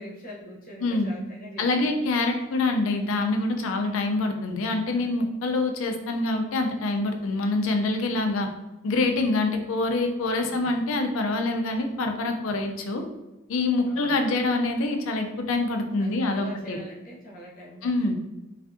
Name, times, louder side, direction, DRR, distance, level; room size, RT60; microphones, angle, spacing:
voice 1, 0.0-1.9 10.4-10.8 13.8-14.2 16.0-18.1, left 1 dB, 45° left, -3 dB, 0.7 m, -43 dB
voice 2, 0.8-1.1 1.6-8.5 8.8-13.0 13.5-16.8 17.8-18.1, left 2 dB, 85° left, 5 dB, 0.4 m, -25 dB
2.5 x 2.3 x 2.5 m, 1.0 s
head